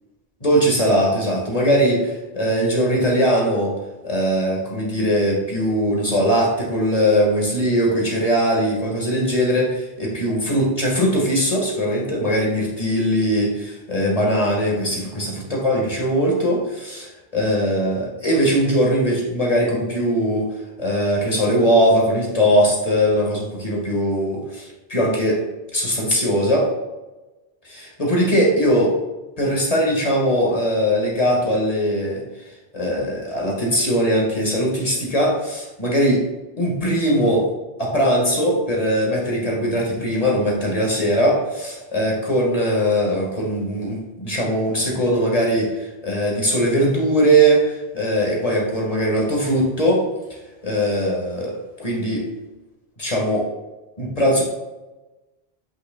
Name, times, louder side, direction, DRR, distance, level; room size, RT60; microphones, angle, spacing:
voice 1, 0.4-3.7 4.0-20.5 20.8-25.4 25.7-26.7 27.6-28.9 29.4-32.2 32.7-36.2 36.6-37.5 37.8-50.0 50.6-52.3 53.0-53.5 54.0-54.4, equal, 35° left, -3 dB, 1.9 m, -20 dB
8.3 x 5.9 x 2.3 m, 1.1 s
omnidirectional pair, 1.0 m